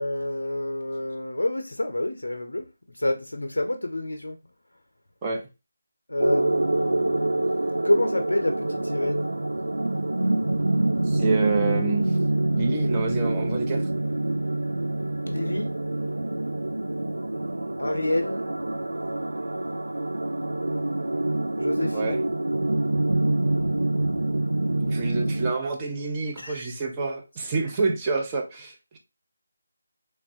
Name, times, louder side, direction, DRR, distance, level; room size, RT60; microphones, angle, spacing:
voice 1, 0.0-2.7 2.9-4.4 6.1-7.4 7.8-9.3 15.2-15.7 17.8-18.4 21.6-22.2 26.3-26.7, left 1 dB, 80° left, 0.4 m, -28 dB
sound 1, 6.2-25.5, right 2 dB, 75° right, 0.3 m, -26 dB
voice 2, 11.1-12.1 12.5-13.9 21.9-22.2 24.8-29.0, right 4 dB, 20° right, 0.6 m, -28 dB
3.2 x 2.1 x 2.6 m
figure-of-eight pair, 160°, 0 cm